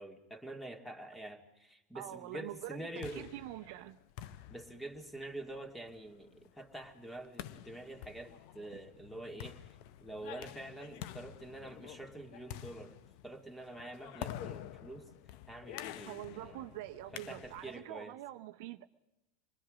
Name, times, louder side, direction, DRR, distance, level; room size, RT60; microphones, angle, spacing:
voice 1, 0.0-3.3 4.5-9.6 10.0-13.0 13.2-15.1 15.5-16.7 17.1-18.1, right 1 dB, 5° left, 2.4 m, -46 dB
voice 2, 1.9-4.0 16.1-18.9, right 15 dB, 65° right, 0.8 m, -45 dB
sound 1, 2.7-17.8, left 12 dB, 60° left, 0.7 m, -49 dB
26.0 x 20.5 x 5.1 m
hypercardioid pair, 100°, 0 cm